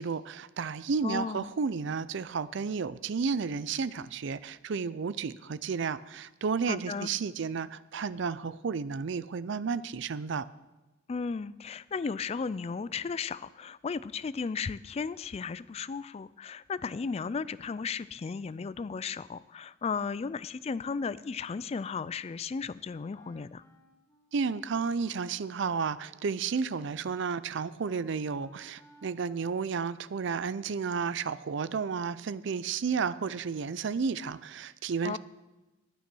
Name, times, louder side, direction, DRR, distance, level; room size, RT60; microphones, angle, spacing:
voice 1, 0.0-10.5 24.3-35.2, right 5 dB, 60° right, 16 dB, 0.4 m, -32 dB
voice 2, 1.0-1.5 6.7-7.1 11.1-23.6 35.0-35.2, left 5 dB, 30° left, 17 dB, 0.3 m, -35 dB
Wind instrument woodwind instrument, 23.1-30.3, left 1 dB, 15° left, 1.2 m, -62 dB
11.0 x 9.3 x 6.2 m, 1.1 s
head